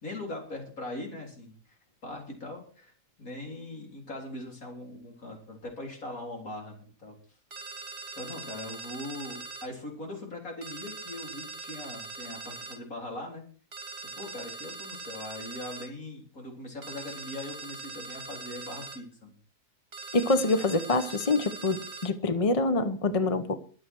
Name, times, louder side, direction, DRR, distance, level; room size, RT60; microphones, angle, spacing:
voice 1, 0.0-1.6 2.0-2.9 3.2-7.2 8.2-13.4 14.1-19.3, left 2 dB, 55° left, 4.4 m, -40 dB
sound 1, 7.5-9.7 10.6-12.8 13.7-15.9 16.8-19.0 19.9-22.1, right 4 dB, 40° right, 1.7 m, -42 dB
voice 2, 20.1-23.6, left 2 dB, 30° left, 0.7 m, -26 dB
22.5 x 7.6 x 4.6 m
omnidirectional pair, 1.7 m